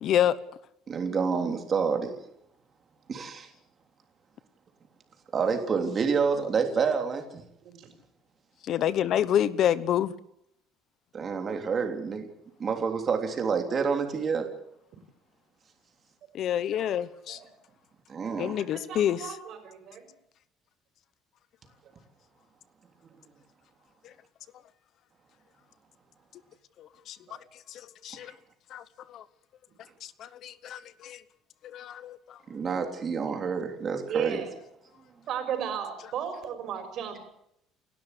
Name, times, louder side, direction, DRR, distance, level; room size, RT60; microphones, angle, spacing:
voice 1, 0.0-0.4 8.6-10.1 16.3-17.4 18.4-19.4 24.0-24.1 26.8-27.2 27.5-28.3 28.7-29.2 30.0-31.2 31.6-32.4, left 10 dB, 50° left, 16 dB, 1.0 m, -28 dB
voice 2, 0.9-2.2 3.1-3.5 5.3-7.4 11.1-12.3 12.6-14.5 18.1-18.6 28.1-28.3 32.5-34.5, right 5 dB, 30° right, 5 dB, 3.4 m, -28 dB
voice 3, 18.6-20.1 27.3-27.4 34.1-34.5 35.3-37.2, right 8 dB, 50° right, 7 dB, 5.7 m, -35 dB
29.0 x 12.5 x 8.3 m, 0.76 s
cardioid pair, 150°, 0 cm